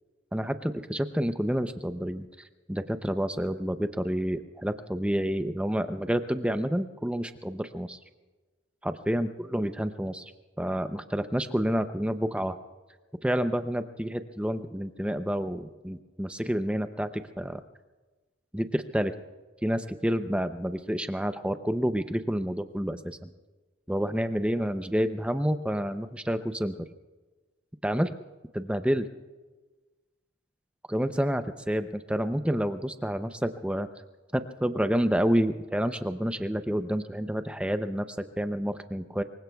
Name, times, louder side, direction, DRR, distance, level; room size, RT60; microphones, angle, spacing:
voice 1, 0.3-2.3 2.7-8.0 8.8-10.3 10.6-12.6 13.2-17.1 17.4-17.6 18.5-19.1 19.6-23.3 23.9-26.9 27.8-28.1 28.5-29.1 30.9-33.9 34.3-39.2, equal, 5° right, 9 dB, 0.5 m, -29 dB
25.5 x 23.5 x 2.3 m, 1.3 s
head